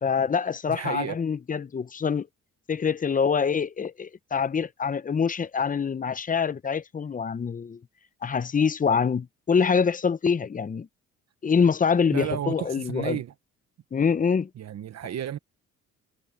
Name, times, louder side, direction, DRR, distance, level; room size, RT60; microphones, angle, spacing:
voice 1, 0.0-2.3 2.7-7.8 8.2-10.9 11.4-13.2 13.9-14.5, left 6 dB, 25° left, 0.7 m, -25 dB
voice 2, 0.7-1.2 12.1-13.3 14.6-15.4, right 10 dB, 60° right, 1.2 m, -32 dB
cardioid pair, 90°, 30 cm